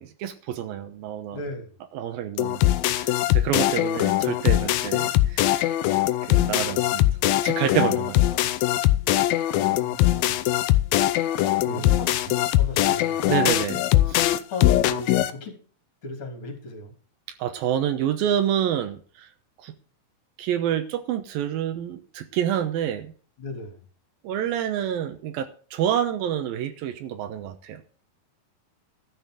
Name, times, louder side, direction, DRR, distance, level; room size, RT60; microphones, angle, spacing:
voice 1, 0.0-1.4 1.9-5.7 6.2-7.1 7.4-8.2 11.7-12.0 13.3-13.8 14.1-14.2 17.4-19.3 19.6-19.7 20.4-23.1 24.2-27.8, right 10 dB, 85° right, 8 dB, 2.8 m, -28 dB
voice 2, 1.3-1.7 11.7-12.1 12.5-13.2 14.3-15.6 16.0-16.9 23.4-23.8, left 3 dB, 40° left, 4 dB, 3.7 m, -36 dB
sound 1, 2.4-15.3, left 14 dB, 85° left, 2.6 m, -21 dB
12.5 x 6.4 x 7.7 m, 0.41 s
omnidirectional pair, 4.1 m